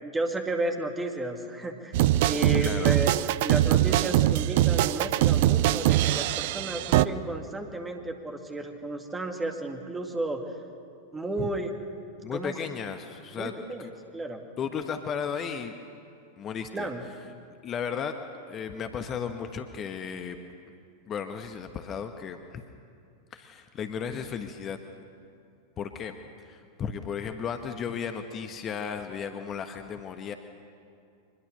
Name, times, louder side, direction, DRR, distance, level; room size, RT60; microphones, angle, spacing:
voice 1, 0.0-2.0 2.3-10.4 11.1-11.7 12.3-12.6 13.4-13.9 14.1-14.5 16.7-17.0, right 2 dB, 10° right, 4 dB, 2.2 m, -33 dB
sound 1, 1.9-7.1, right 14 dB, 50° right, 0.5 m, -23 dB
voice 2, 2.6-3.0 11.4-11.5 12.2-13.5 13.8-13.9 14.6-15.7 16.4-16.9 17.6-18.2 18.5-20.4 21.1-22.6 23.3-24.8 25.8-30.3, left 7 dB, 30° left, 7 dB, 1.2 m, -34 dB
24.0 x 21.0 x 6.6 m, 2.5 s
figure-of-eight pair, 90°, 0 cm